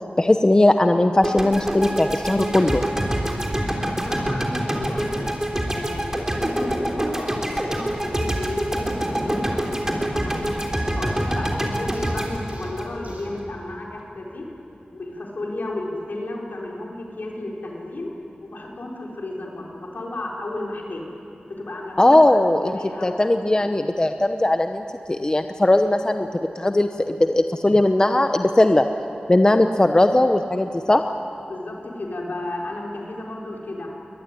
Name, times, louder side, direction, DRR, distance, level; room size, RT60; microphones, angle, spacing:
voice 1, 0.2-2.8 22.0-28.9 29.3-31.1, left 1 dB, 25° left, 7 dB, 0.9 m, -19 dB
sound 1, 1.2-13.4, right 1 dB, 15° right, 3.4 m, -26 dB
voice 2, 3.8-5.3 5.7-10.5 10.9-14.5 14.9-18.1 18.4-21.1 21.6-22.2 22.7-23.2 31.5-33.9, left 2 dB, 75° left, -2 dB, 4.4 m, -33 dB
sound 2, 11.9-13.4, right 1 dB, 60° right, 5.5 m, -41 dB
23.0 x 19.5 x 9.8 m, 2.9 s
wide cardioid pair, 75°, 3 cm